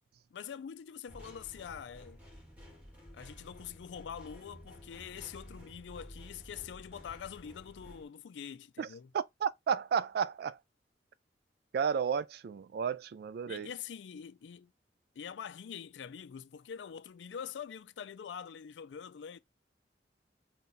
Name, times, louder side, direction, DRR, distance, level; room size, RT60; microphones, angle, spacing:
voice 1, 0.3-2.2 3.1-9.1 13.4-14.7 15.2-19.4, left 8 dB, 85° left, 0.4 m, -45 dB
sound 1, 1.1-8.0, equal, 10° right, 2.0 m, -52 dB
voice 2, 9.1-10.6 11.7-13.7, right 7 dB, 60° right, 0.3 m, -32 dB
3.9 x 2.3 x 3.9 m
head